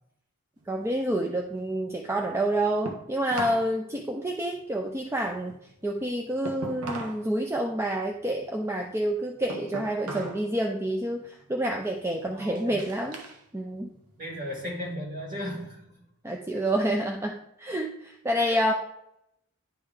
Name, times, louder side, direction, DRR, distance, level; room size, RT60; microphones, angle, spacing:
sound 1, 0.6-3.7 4.0-7.3 7.6-10.5 10.8-11.2 11.8-13.4 13.8-14.9, right 2 dB, 90° right, 1.1 m, -40 dB
voice 1, 0.7-5.6 5.8-13.2 13.5-13.9 16.2-18.7, right 1 dB, 10° right, 1 dB, 0.4 m, -28 dB
voice 2, 12.2-12.8 14.2-15.8 18.4-18.6, equal, 40° right, -1 dB, 1.8 m, -36 dB
10.5 x 3.7 x 3.3 m, 0.78 s
head